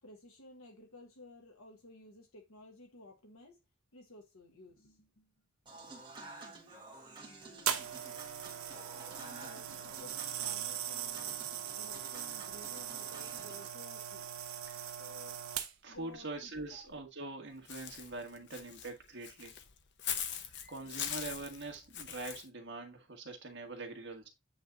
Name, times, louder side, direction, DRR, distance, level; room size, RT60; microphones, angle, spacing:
voice 1, 0.0-3.6 3.9-5.3 5.8-5.9 9.2-14.3 14.7-15.4 15.9-16.9 20.8-21.1, left 2 dB, 70° left, 1.5 m, -55 dB
Human voice / Acoustic guitar / Piano, 5.7-13.7, right 2 dB, 20° right, 1.6 m, -52 dB
sound 1, 7.7-16.0 16.7-16.9, right 9 dB, 75° right, 1.1 m, -40 dB
voice 2, 15.8-19.5 20.7-24.3, right 2 dB, 55° right, 1.7 m, -44 dB
Walk footsteps / Bird, 17.7-22.4, left 8 dB, 55° left, 0.8 m, -41 dB
8.5 x 3.6 x 3.9 m
head